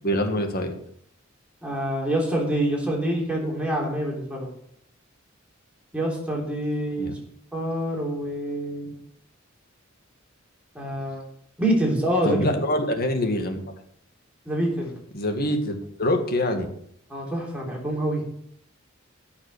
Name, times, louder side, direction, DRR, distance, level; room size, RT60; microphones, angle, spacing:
voice 1, 0.0-0.7 7.0-7.2 12.2-13.6 15.1-16.7, left 1 dB, 50° left, 5 dB, 1.9 m, -25 dB
voice 2, 1.6-4.5 5.9-7.1 7.5-8.9 10.8-11.2 11.6-12.5 14.5-15.0 17.1-18.2, right 1 dB, 5° right, -2 dB, 3.4 m, -26 dB
14.5 x 6.2 x 6.7 m, 0.69 s
head